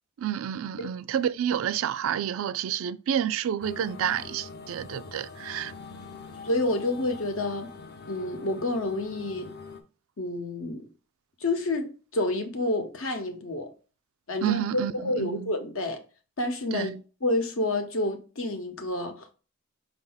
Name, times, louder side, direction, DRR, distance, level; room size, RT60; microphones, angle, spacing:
voice 1, 0.2-5.7 14.4-15.5 16.7-17.0, right 9 dB, 70° right, 0.3 m, -29 dB
sound 1, 3.6-9.8, left 4 dB, 50° left, 0.6 m, -44 dB
voice 2, 6.4-7.7 8.1-9.5 10.2-10.8 11.4-13.7 14.3-16.0 16.4-16.9 17.2-19.3, left 2 dB, 75° left, 1.0 m, -29 dB
5.1 x 2.7 x 3.9 m
head